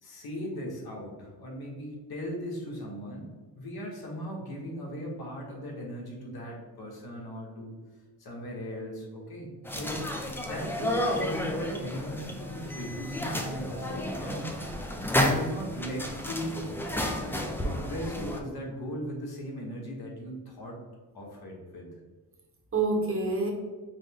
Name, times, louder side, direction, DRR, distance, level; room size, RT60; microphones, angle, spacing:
voice 1, 0.0-3.3 3.6-7.8 8.2-10.0 10.4-14.5 15.2-16.7 17.2-20.8 21.1-21.9, equal, 65° left, -1 dB, 1.2 m, -38 dB
sound 1, 9.6-18.4, left 1 dB, 5° left, 0.4 m, -31 dB
voice 2, 13.2-14.7 22.7-23.5, right 3 dB, 30° right, 0 dB, 1.0 m, -31 dB
5.2 x 2.1 x 3.5 m, 1.3 s
cardioid pair, 100°, 41 cm